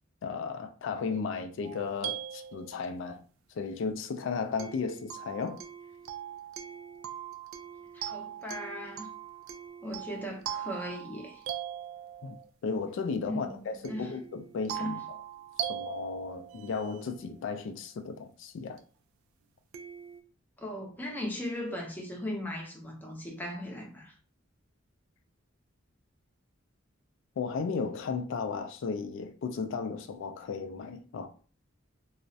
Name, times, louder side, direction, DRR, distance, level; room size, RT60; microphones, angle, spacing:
voice 1, 0.2-3.2 3.5-5.6 12.2-12.4 12.6-15.0 15.7-18.8 27.4-31.3, left 5 dB, 65° left, 0.3 m, -35 dB
sound 1, 1.6-3.1 4.6-12.5 13.8-17.2 18.8-18.9 19.7-20.2, right 10 dB, 85° right, 0.3 m, -41 dB
voice 2, 7.9-9.1 9.8-11.4 13.3-14.1 14.7-15.1 20.6-24.1, left 1 dB, 10° left, 0.5 m, -38 dB
2.3 x 2.0 x 2.6 m
head